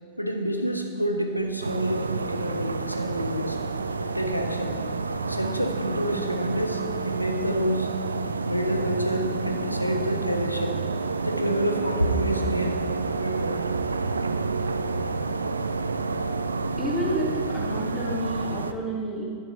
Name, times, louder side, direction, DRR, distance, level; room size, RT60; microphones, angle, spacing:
voice 1, 0.2-3.6 4.1-4.8 5.3-8.1 8.4-10.7 11.2-13.6, equal, 90° left, 4 dB, 0.9 m, -28 dB
sound 1, 1.6-18.7, right 4 dB, 75° right, 0.4 m, -29 dB
voice 2, 16.8-19.3, equal, 5° left, -6 dB, 2.7 m, -30 dB
11.5 x 10.0 x 2.8 m, 2.1 s
figure-of-eight pair, 90°, 0 cm